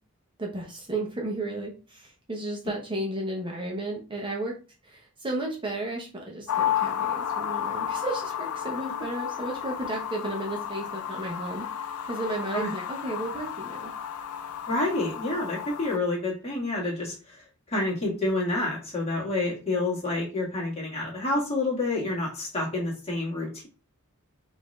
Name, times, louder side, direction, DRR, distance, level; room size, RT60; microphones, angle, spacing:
voice 1, 0.4-4.5 4.8-13.9, right 2 dB, 20° right, -1 dB, 0.8 m, -33 dB
sound 1, 6.5-16.0, left 9 dB, 85° left, 0.4 m, -32 dB
voice 2, 14.7-23.7, left 2 dB, 30° left, -4 dB, 1.7 m, -28 dB
5.0 x 2.7 x 3.2 m, 0.33 s
head